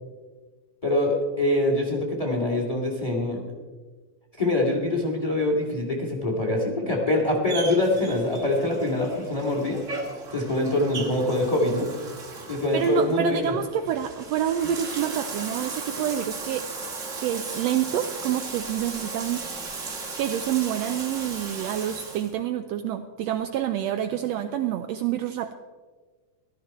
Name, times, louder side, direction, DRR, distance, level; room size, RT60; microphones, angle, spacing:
voice 1, 0.8-3.4 4.4-9.8 10.3-11.9 12.5-13.5, left 1 dB, 15° left, 0 dB, 2.1 m, -24 dB
Bathtub (filling or washing), 7.5-22.3, right 4 dB, 35° right, 1.4 m, -36 dB
voice 2, 12.7-16.7 17.2-19.4 19.7-25.5, right 10 dB, 80° right, 8 dB, 1.6 m, -28 dB
15.0 x 12.5 x 4.4 m, 1.4 s
omnidirectional pair, 3.4 m